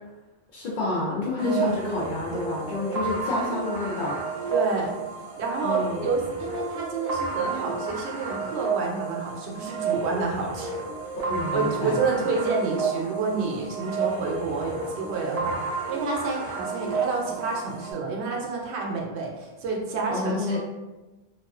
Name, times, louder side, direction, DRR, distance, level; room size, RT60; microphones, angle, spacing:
voice 1, 0.5-4.2 5.6-6.1 11.3-12.0 20.1-20.6, left 2 dB, 55° left, -5 dB, 0.6 m, -29 dB
sound 1, 1.4-17.9, right 4 dB, 45° right, 0.6 m, -31 dB
voice 2, 4.5-5.0 5.4-10.8 11.5-15.6 15.9-20.6, right 4 dB, 75° right, -1 dB, 0.8 m, -29 dB
2.4 x 2.3 x 2.3 m, 1.1 s
omnidirectional pair, 1.1 m